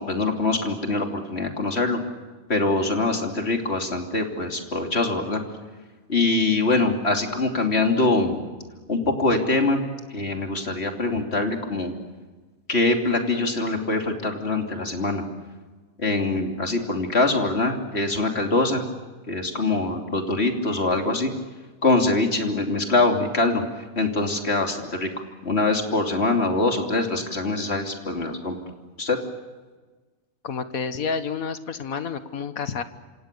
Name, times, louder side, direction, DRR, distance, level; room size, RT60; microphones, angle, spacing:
voice 1, 0.0-2.0 2.5-5.4 6.1-8.4 8.9-9.8 10.1-11.9 12.7-15.2 16.0-18.8 19.3-21.3 21.8-25.1 25.4-28.6 29.0-29.2, left 2 dB, 50° left, 3 dB, 3.3 m, -23 dB
voice 2, 30.4-32.8, left 6 dB, 90° left, 11 dB, 1.8 m, -29 dB
27.0 x 27.0 x 6.8 m, 1.3 s
omnidirectional pair, 1.4 m